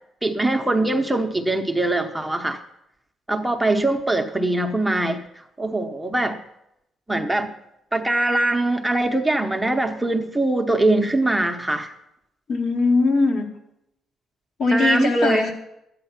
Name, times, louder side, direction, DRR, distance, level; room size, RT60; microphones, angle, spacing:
voice 1, 0.2-2.6 3.3-6.4 7.1-7.5 7.9-11.9 14.7-15.4, right 2 dB, 10° right, 4 dB, 0.8 m, -22 dB
voice 2, 12.5-13.5 14.6-15.5, left 3 dB, 60° left, 1 dB, 2.1 m, -20 dB
12.0 x 8.9 x 5.8 m, 0.83 s
cardioid pair, 90°, 0 cm